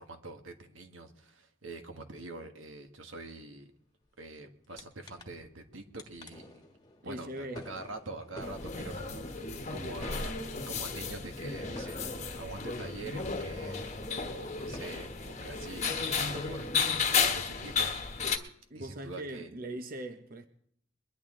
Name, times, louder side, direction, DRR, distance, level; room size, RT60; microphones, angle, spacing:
voice 1, 0.0-3.7 4.2-6.6 7.0-12.1 12.4-17.9 18.7-19.5, right 2 dB, 90° right, 1.6 m, -45 dB
sound 1, 4.8-4.9 5.1-5.7 6.0-13.9 14.3-14.4 14.7-15.6, left 1 dB, 20° left, 1.5 m, -49 dB
voice 2, 7.0-7.7 18.7-20.5, right 1 dB, 45° right, 0.8 m, -40 dB
sound 2, 8.4-18.4, left 5 dB, 35° left, 1.3 m, -33 dB
22.5 x 11.0 x 3.7 m
head